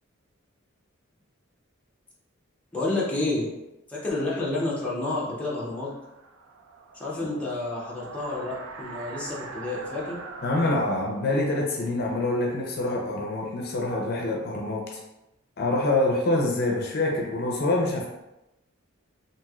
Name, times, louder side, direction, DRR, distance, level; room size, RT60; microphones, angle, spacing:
voice 1, 2.7-3.5 3.9-5.9 6.9-10.2, left 2 dB, 5° left, -7 dB, 0.6 m, -29 dB
sound 1, 5.0-13.5, right 3 dB, 85° right, 0.4 m, -44 dB
voice 2, 10.4-15.0 15.6-18.1, left 2 dB, 50° left, -1 dB, 0.5 m, -26 dB
3.0 x 2.7 x 2.3 m, 0.94 s
head